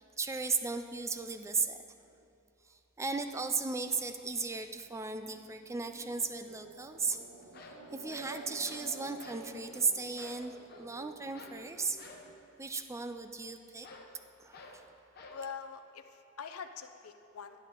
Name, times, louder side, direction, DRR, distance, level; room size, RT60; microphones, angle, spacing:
voice 1, 0.0-1.8 2.7-7.2 7.9-12.0 12.6-13.9 14.4-14.8, right 4 dB, 15° right, 8 dB, 0.4 m, -36 dB
sound 1, 3.1-12.4, right 3 dB, 85° right, 1.0 m, -52 dB
sound 2, 7.0-7.1 7.4-8.9 9.2-9.5 9.7-9.9 10.2-10.9 11.3-11.6 12.0-12.3 13.8-14.1 14.5-14.8 15.2-15.4, left 3 dB, 50° left, 1.0 m, -52 dB
voice 2, 15.3-17.6, left 6 dB, 85° left, 8 dB, 0.6 m, -44 dB
11.5 x 10.5 x 3.8 m, 2.8 s
head